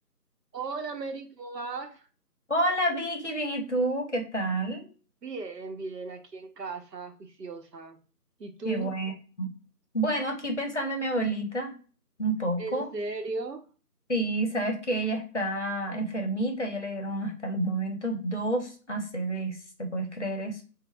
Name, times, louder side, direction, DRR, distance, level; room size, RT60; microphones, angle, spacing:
voice 1, 0.5-2.1 5.2-8.0 8.4-8.9 12.6-13.7, right 3 dB, 80° right, 0.7 m, -36 dB
voice 2, 2.5-4.9 8.6-9.1 9.4-9.5 9.9-11.7 12.2-12.9 14.1-20.6, right 1 dB, 50° left, 0.7 m, -29 dB
3.2 x 2.0 x 3.0 m
figure-of-eight pair, 165°, 48 cm